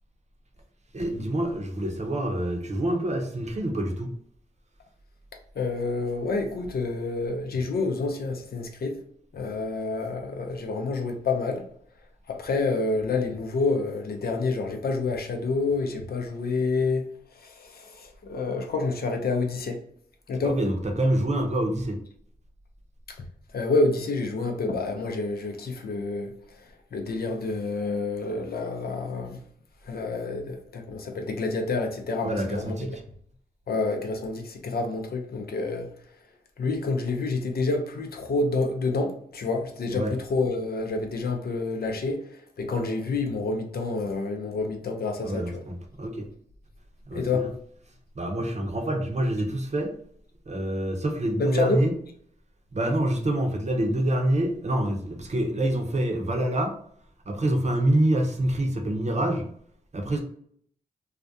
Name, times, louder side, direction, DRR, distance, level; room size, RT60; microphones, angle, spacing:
voice 1, 0.9-4.1 20.4-22.0 32.2-32.9 39.9-40.1 45.2-46.3 47.1-47.5 48.2-49.9 50.5-51.9 52.7-56.7 57.3-59.5 59.9-60.2, right 1 dB, 40° right, 0.7 m, -26 dB
voice 2, 5.5-9.0 9.3-11.7 12.3-19.8 20.3-20.6 23.1-23.2 23.5-29.4 29.8-33.0 33.7-35.9 36.6-45.6 47.1-47.5 51.4-51.8, left 3 dB, 65° left, 0.5 m, -28 dB
2.4 x 2.1 x 2.6 m
cardioid pair, 40°, 17 cm